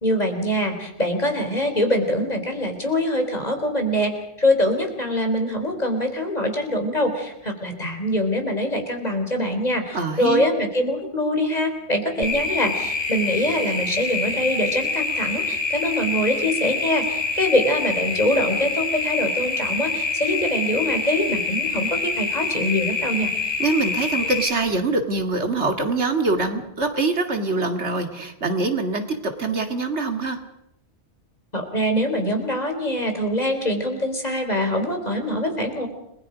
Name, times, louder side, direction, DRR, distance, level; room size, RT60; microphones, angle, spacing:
voice 1, 0.0-4.1 4.4-23.3 31.5-35.9, left 1 dB, 35° left, 4 dB, 4.0 m, -24 dB
voice 2, 9.9-10.4 23.6-30.4, right 3 dB, 85° right, 6 dB, 2.6 m, -24 dB
sound 1, 12.2-24.5, left 4 dB, 20° left, 4.2 m, -26 dB
30.0 x 21.0 x 5.1 m, 0.80 s
omnidirectional pair, 1.1 m